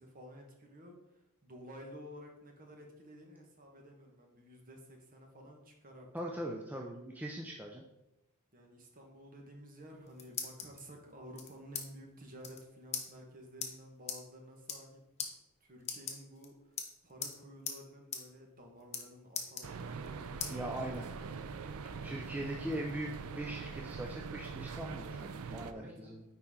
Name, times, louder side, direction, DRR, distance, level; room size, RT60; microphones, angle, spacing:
voice 1, 0.0-6.6 8.5-15.0 15.6-20.8 21.1-21.5 25.7-26.2, equal, 40° right, 1 dB, 1.5 m, -53 dB
voice 2, 6.1-7.8 20.5-21.1 22.0-26.2, right 1 dB, 5° right, 0 dB, 0.5 m, -40 dB
sound 1, 9.8-10.8 11.4-11.9 12.1-12.2 12.4-12.6 12.9-13.1 13.6-13.7 14.1-14.2 14.6-14.9 15.2-15.3 15.8-16.5 16.8-17.4 17.7-17.8 18.1-18.2 18.5-19.0 19.3-20.1 20.4-20.5 21.0-21.9, left 6 dB, 30° left, 0.9 m, -40 dB
sound 2, 19.6-25.7, right 5 dB, 70° right, 0.5 m, -43 dB
9.7 x 4.4 x 3.7 m, 0.91 s
head